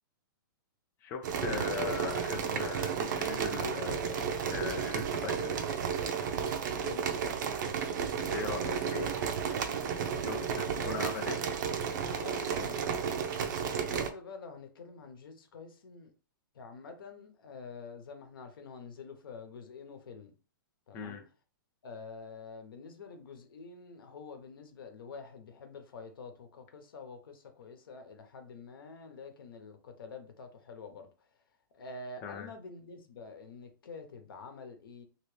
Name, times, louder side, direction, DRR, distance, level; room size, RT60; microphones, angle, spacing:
voice 1, 1.0-5.6 8.3-9.1 10.2-11.4 20.9-21.2 32.2-32.5, left 6 dB, 20° left, 0.5 m, -39 dB
sound 1, 1.2-14.1, right 7 dB, 55° right, 0.6 m, -33 dB
voice 2, 6.5-7.1 10.3-10.9 12.1-13.0 13.3-16.1 16.5-20.3 20.9-21.2 21.8-31.1 31.7-35.0, left 4 dB, 80° left, 0.9 m, -47 dB
3.0 x 2.8 x 3.2 m
hypercardioid pair, 155°, 12 cm